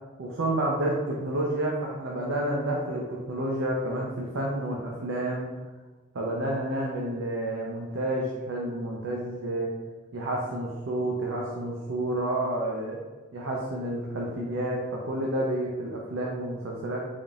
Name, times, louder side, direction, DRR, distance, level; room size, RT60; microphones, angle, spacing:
voice 1, 0.2-5.5 6.1-9.7 10.1-13.0 13.3-17.0, right 1 dB, 85° right, -3 dB, 0.6 m, -30 dB
3.8 x 3.6 x 2.4 m, 1.3 s
head